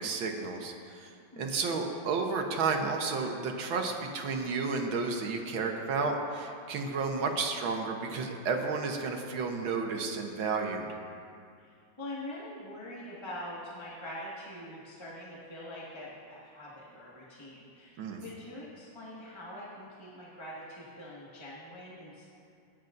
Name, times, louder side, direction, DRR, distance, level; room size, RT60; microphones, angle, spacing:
voice 1, 0.0-10.9 18.0-18.2, right 4 dB, 85° right, 3 dB, 1.9 m, -32 dB
voice 2, 11.6-22.3, left 1 dB, 15° left, -7 dB, 1.8 m, -44 dB
21.0 x 10.5 x 2.6 m, 2.4 s
omnidirectional pair, 2.1 m